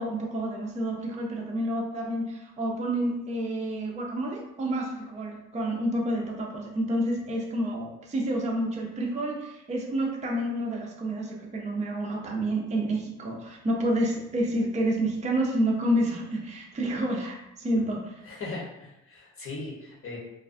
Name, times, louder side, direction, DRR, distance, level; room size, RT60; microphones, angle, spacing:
voice 1, 0.0-18.2, right 1 dB, 25° right, -1 dB, 0.5 m, -29 dB
voice 2, 18.3-20.2, left 3 dB, 45° left, -3 dB, 0.9 m, -38 dB
2.4 x 2.2 x 2.5 m, 0.88 s
cardioid pair, 90°, 30 cm